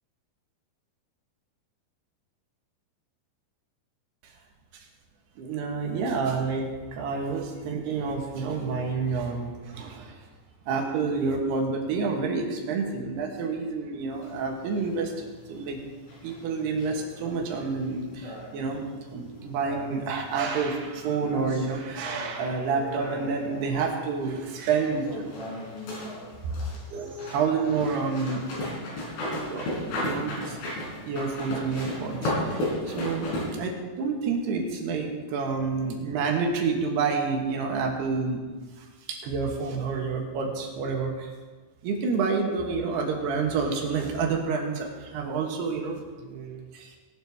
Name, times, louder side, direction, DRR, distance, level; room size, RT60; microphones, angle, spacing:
voice 1, 5.4-10.2 10.7-15.8 16.2-25.3 26.4-26.6 26.9-28.4 29.3-29.8 30.0-30.6 31.1-38.4 38.8-41.3 41.8-47.0, right 4 dB, 65° right, 2 dB, 3.1 m, -29 dB
sound 1, 14.1-33.7, left 1 dB, 85° left, 7.4 m, -36 dB
19.5 x 11.5 x 3.5 m, 1.4 s
omnidirectional pair, 5.5 m